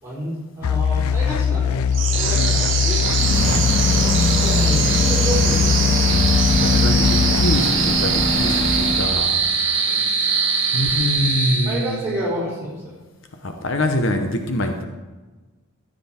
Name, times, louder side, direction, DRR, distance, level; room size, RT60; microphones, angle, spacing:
voice 1, 0.0-1.9 2.1-3.0 4.4-6.2 9.9-10.0 11.6-12.9, right 1 dB, 15° right, -7 dB, 4.3 m, -29 dB
sound 1, 0.6-7.6, left 7 dB, 85° left, 0.4 m, -21 dB
sound 2, 1.9-12.2, right 6 dB, 60° right, 1.5 m, -22 dB
voice 2, 2.2-2.5 4.0-4.2 6.3-9.4 9.7-10.3 10.7-12.0 13.4-14.8, left 1 dB, 60° left, 5 dB, 1.0 m, -25 dB
sound 3, 3.0-9.1, left 1 dB, 45° left, 2.0 m, -22 dB
13.5 x 7.8 x 4.4 m, 1.2 s
head